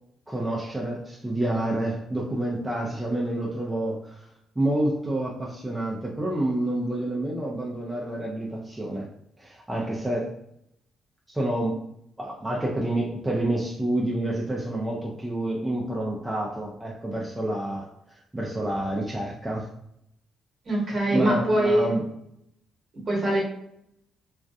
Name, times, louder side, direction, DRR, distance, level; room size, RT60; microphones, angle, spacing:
voice 1, 0.3-4.3 4.6-9.1 9.4-10.3 11.3-11.8 12.2-19.7 21.1-22.1, right 1 dB, 10° right, -3 dB, 0.4 m, -28 dB
voice 2, 20.6-21.9 23.1-23.4, right 1 dB, 45° right, -2 dB, 1.1 m, -23 dB
2.3 x 2.1 x 2.6 m, 0.76 s
cardioid pair, 90°, 0 cm